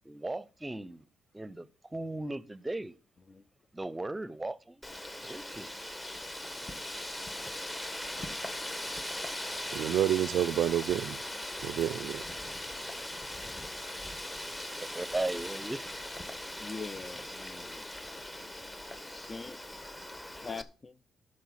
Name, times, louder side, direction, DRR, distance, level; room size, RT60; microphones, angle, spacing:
voice 1, 0.0-1.0 1.3-2.9 3.7-4.8 5.2-5.8 14.8-15.8, right 2 dB, 15° right, 0.8 m, -37 dB
Wind, 4.8-20.6, left 1 dB, 20° left, 1.6 m, -40 dB
voice 2, 9.7-11.2 11.6-12.2, right 12 dB, 75° right, 0.4 m, -29 dB
voice 3, 16.6-17.9 19.0-19.6 20.4-21.0, left 4 dB, 40° left, 0.6 m, -43 dB
11.5 x 6.7 x 5.8 m
supercardioid pair, 60°, 0 cm